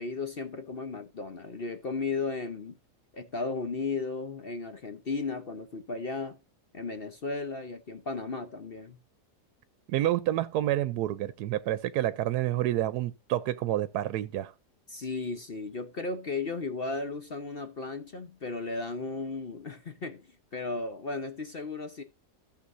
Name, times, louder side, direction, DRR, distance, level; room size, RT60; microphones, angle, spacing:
voice 1, 0.0-2.8 3.1-6.4 6.7-9.0 14.9-22.0, left 3 dB, 45° left, 0.9 m, -35 dB
voice 2, 9.9-14.5, right 13 dB, 80° right, 1.2 m, -28 dB
14.5 x 6.7 x 2.5 m
omnidirectional pair, 1.7 m